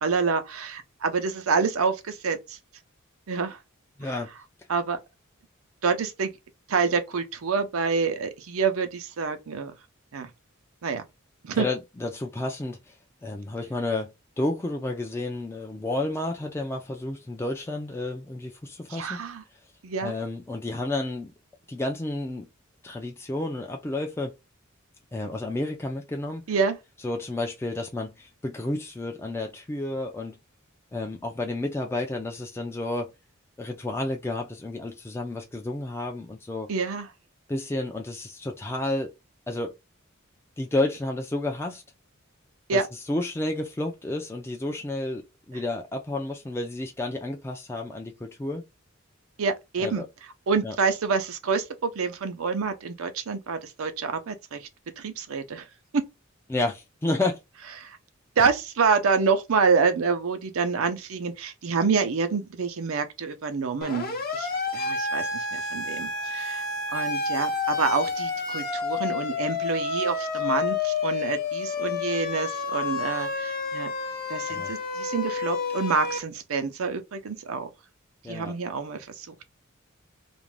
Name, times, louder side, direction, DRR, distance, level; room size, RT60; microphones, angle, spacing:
voice 1, 0.0-2.6 3.3-3.6 4.0-4.1 4.7-5.0 5.8-6.3 6.7-9.7 10.1-10.3 10.8-11.0 11.4-11.7 18.9-19.4 19.8-20.1 26.5-26.8 36.7-37.1 42.7-42.9 49.4-50.1 50.5-54.7 55.0-55.7 57.8-58.0 58.4-66.6 66.9-73.9 74.3-77.7 78.3-79.5, right 5 dB, 85° right, 0.6 m, -27 dB
voice 2, 4.0-4.3 11.5-12.9 13.2-14.1 14.4-19.2 20.0-21.3 21.7-22.5 22.8-24.3 25.1-26.4 27.0-30.4 30.9-33.1 33.6-36.7 37.5-39.1 39.5-39.7 40.6-41.8 42.7-42.8 43.1-48.6 49.8-50.1 50.6-50.8 56.5-57.4 74.5-74.7 78.2-78.6, left 2 dB, 10° left, 0.3 m, -31 dB
Siren, 63.8-76.2, left 4 dB, 45° left, 0.7 m, -29 dB
2.5 x 2.1 x 3.1 m
head